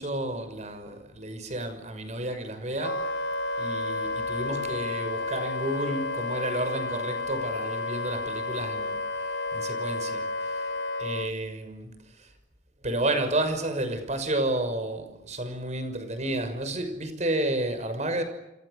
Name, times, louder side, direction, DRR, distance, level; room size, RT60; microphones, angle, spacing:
voice 1, 0.0-3.0 3.6-9.0 9.3-10.7 11.0-12.3 12.8-18.2, right 1 dB, 40° right, 6.2 m, -31 dB
Wind instrument woodwind instrument, 2.8-11.3, left 3 dB, 80° left, 1.7 m, -31 dB
29.0 x 29.0 x 6.8 m
head